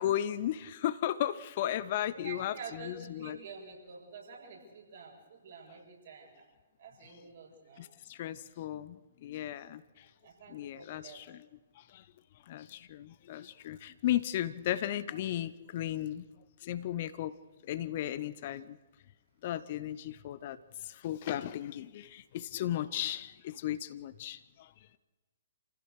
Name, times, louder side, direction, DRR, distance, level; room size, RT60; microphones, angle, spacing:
voice 1, 0.0-3.4 7.8-10.1 10.5-11.4 11.8-12.0 12.5-16.2 16.6-17.4 17.7-18.8 19.4-20.6 20.8-24.7, left 12 dB, 40° left, 15 dB, 0.8 m, -35 dB
voice 2, 2.1-6.5 6.8-8.0 10.2-11.2, right 5 dB, 55° right, -1 dB, 7.4 m, -48 dB
28.5 x 15.5 x 6.7 m, 1.2 s
figure-of-eight pair, 125°, 0 cm